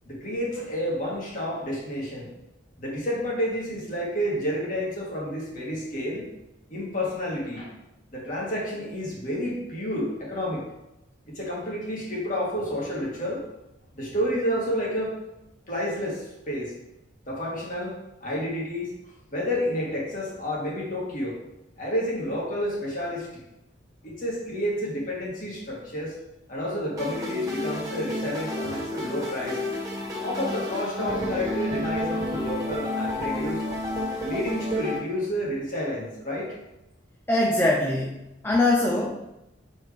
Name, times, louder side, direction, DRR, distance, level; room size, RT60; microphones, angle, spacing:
voice 1, 0.0-2.3 2.8-6.3 6.7-7.7 8.1-10.6 11.3-13.4 13.9-15.2 15.7-16.7 17.3-18.9 19.3-21.4 21.8-23.3 24.0-26.2 26.5-29.6 30.2-33.6 34.2-36.6, equal, 45° left, -4 dB, 1.9 m, -30 dB
sound 1, 27.0-35.0, left 1 dB, 20° right, 1.3 m, -30 dB
voice 2, 37.3-39.2, left 2 dB, 10° left, -2 dB, 0.6 m, -23 dB
6.7 x 4.5 x 3.4 m, 0.92 s
head